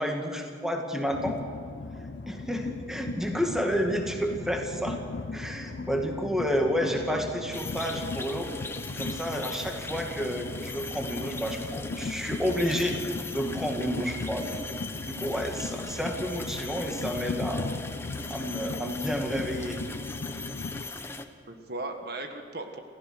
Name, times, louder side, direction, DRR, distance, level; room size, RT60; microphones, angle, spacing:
voice 1, 0.0-1.4 2.3-5.0 5.3-8.5 9.0-13.0 13.3-14.5 15.1-17.7 18.3-19.8, equal, 5° right, 2 dB, 2.2 m, -30 dB
Train, 1.1-20.9, left 3 dB, 65° left, 0.5 m, -38 dB
voice 2, 6.7-7.2 21.5-22.8, right 2 dB, 60° right, 6 dB, 1.5 m, -37 dB
sound 1, 7.5-21.3, left 3 dB, 15° left, 1.0 m, -39 dB
28.5 x 15.5 x 6.4 m, 2.5 s
head